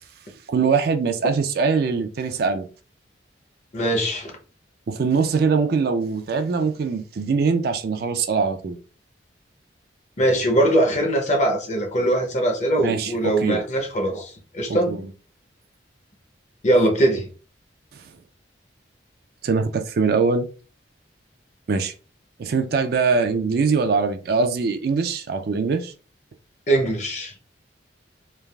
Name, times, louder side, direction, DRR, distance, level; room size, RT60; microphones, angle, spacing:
voice 1, 0.5-2.7 4.9-8.8 12.8-13.6 14.7-15.1 17.9-18.0 19.4-20.5 21.7-21.9 22.4-25.9, right 5 dB, 55° right, 0.3 m, -22 dB
voice 2, 3.7-4.3 10.2-15.0 16.6-17.3 26.7-27.3, right 1 dB, 40° left, 0.6 m, -21 dB
3.2 x 2.4 x 2.3 m
head